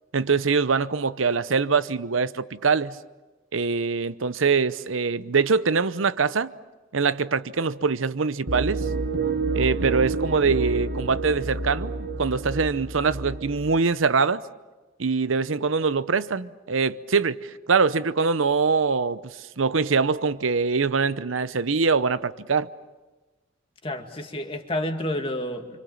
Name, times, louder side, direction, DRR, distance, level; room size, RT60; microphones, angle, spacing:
voice 1, 0.1-3.0 3.5-6.5 6.9-8.9 9.5-14.4 15.0-19.2 19.6-22.7, right 5 dB, 85° right, 0.8 m, -23 dB
sound 1, 8.5-13.8, right 3 dB, 55° right, 1.5 m, -29 dB
voice 2, 23.8-25.8, left 1 dB, 30° left, 2.2 m, -30 dB
28.0 x 26.0 x 7.3 m
head